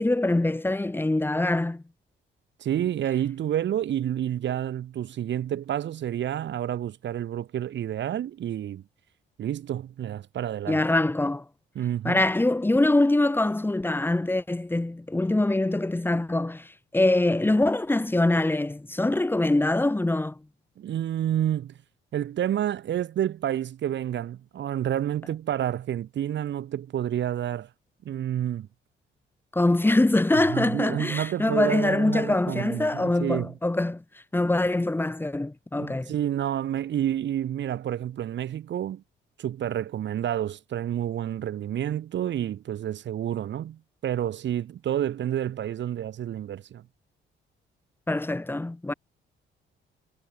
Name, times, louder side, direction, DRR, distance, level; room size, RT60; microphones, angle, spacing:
voice 1, 0.0-1.8 10.7-11.4 12.0-20.3 29.5-34.0 34.3-36.1 48.1-48.9, left 2 dB, 10° left, 1.0 m, -24 dB
voice 2, 2.6-8.8 9.4-10.8 11.8-12.2 20.8-21.7 22.1-27.7 28.1-28.7 30.3-33.5 35.8-39.0 39.4-46.8, right 11 dB, 65° right, 1.7 m, -29 dB
cardioid pair, 90°, 20 cm